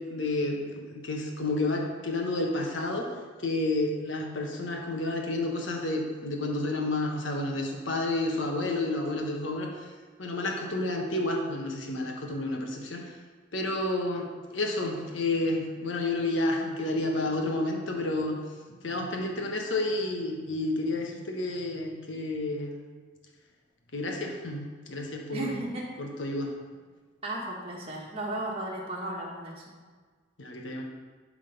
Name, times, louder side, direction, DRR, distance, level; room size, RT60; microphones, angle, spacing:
voice 1, 0.0-3.1 3.4-9.7 10.2-13.2 13.5-18.4 18.8-22.8 23.9-25.6 26.0-26.5 30.4-30.8, left 2 dB, 90° left, 1 dB, 1.3 m, -30 dB
voice 2, 25.3-25.8 27.2-29.6, right 1 dB, 30° right, -4 dB, 1.3 m, -35 dB
11.5 x 3.9 x 5.2 m, 1.5 s
head